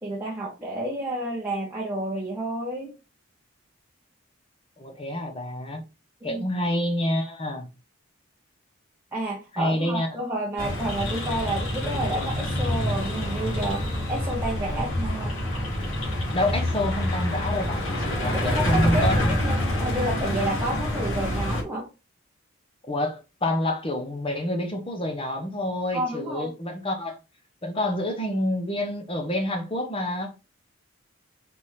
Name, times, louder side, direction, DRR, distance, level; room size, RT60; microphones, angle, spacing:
voice 1, 0.0-2.9 6.2-6.4 9.1-15.4 18.3-21.9 25.9-26.5, right 1 dB, 15° right, 0.8 m, -30 dB
voice 2, 4.8-5.8 6.2-7.7 9.5-10.1 14.6-14.9 16.3-19.4 22.9-27.2 27.6-30.4, left 1 dB, 25° left, 0.7 m, -28 dB
sound 1, 10.6-21.6, left 1 dB, 70° left, 1.9 m, -27 dB
4.2 x 3.4 x 3.2 m
head